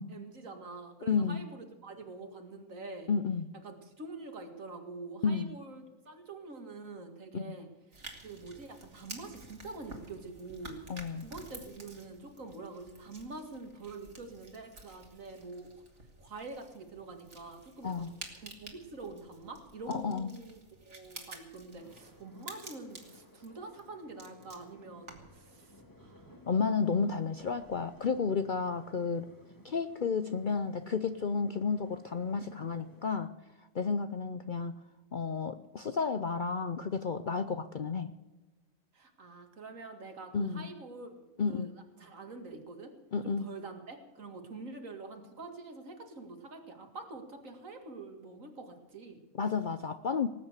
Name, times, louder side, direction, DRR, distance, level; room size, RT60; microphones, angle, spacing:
voice 1, 0.1-3.1 3.6-7.7 8.2-10.8 11.2-15.7 16.2-26.4 26.8-27.1 38.9-41.7 42.0-42.9 43.2-49.2, right 3 dB, 70° right, 5 dB, 2.4 m, -46 dB
voice 2, 1.1-1.4 3.1-3.4 5.2-5.5 7.3-7.6 10.9-11.3 17.8-18.1 19.9-20.3 26.5-29.3 29.6-33.3 33.7-34.8 35.1-38.1 40.3-40.7 41.4-41.7 43.1-43.5 49.3-50.3, left 5 dB, 50° left, 11 dB, 0.6 m, -32 dB
sound 1, 7.9-25.4, right 3 dB, 55° right, 2.6 m, -51 dB
sound 2, 21.8-33.2, equal, 15° left, 2.2 m, -58 dB
19.0 x 8.7 x 8.1 m, 1.1 s
omnidirectional pair, 1.4 m